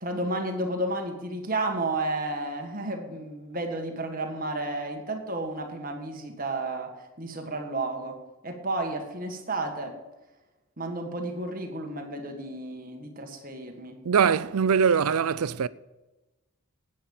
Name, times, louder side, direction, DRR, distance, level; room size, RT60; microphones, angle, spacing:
voice 1, 0.0-9.9 10.8-14.0, right 2 dB, 40° right, 1.6 m, -32 dB
voice 2, 14.0-15.7, right 6 dB, 85° right, 0.5 m, -22 dB
10.0 x 9.1 x 7.1 m
head